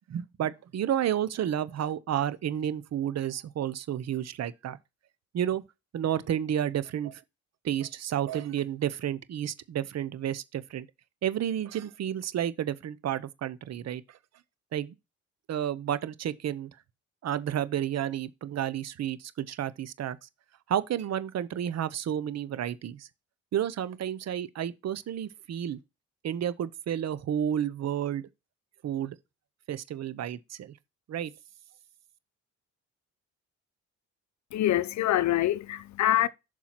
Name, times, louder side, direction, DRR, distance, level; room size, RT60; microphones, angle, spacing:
voice 1, 0.1-4.8 5.3-5.6 5.9-7.2 7.6-10.9 11.2-14.2 14.7-14.9 15.5-16.7 17.2-20.3 20.7-23.1 23.5-25.8 26.2-28.2 28.8-29.2 29.7-30.8 31.1-31.3, right 10 dB, 60° right, 0.8 m, -31 dB
voice 2, 34.5-36.3, left 13 dB, 65° left, 0.7 m, -25 dB
7.0 x 4.6 x 5.9 m
cardioid pair, 90°, 30 cm